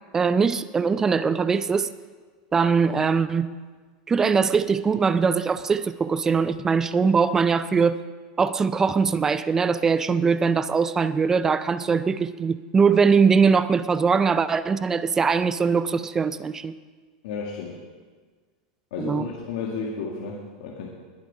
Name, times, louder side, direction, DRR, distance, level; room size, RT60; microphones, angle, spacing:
voice 1, 0.1-1.9 2.5-3.5 4.1-8.0 8.4-16.7 19.0-19.3, right 5 dB, 10° right, 14 dB, 0.3 m, -21 dB
voice 2, 17.2-17.8 18.9-20.9, left 5 dB, 65° left, -2 dB, 1.9 m, -32 dB
20.5 x 7.3 x 5.4 m, 1.5 s
supercardioid pair, 165°, 4 cm